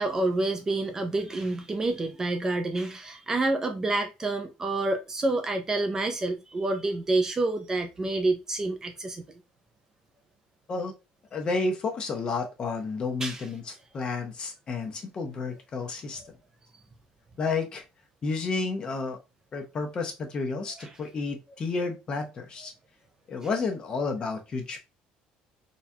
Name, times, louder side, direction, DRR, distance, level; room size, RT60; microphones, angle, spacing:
voice 1, 0.0-9.2 13.2-13.4 20.8-20.9, right 2 dB, 20° right, 0.4 m, -28 dB
voice 2, 11.3-16.2 17.4-17.8 18.2-19.2 19.5-22.7 23.3-24.8, left 4 dB, 30° left, 0.7 m, -31 dB
3.9 x 2.3 x 2.7 m
cardioid pair, 145°, 3 cm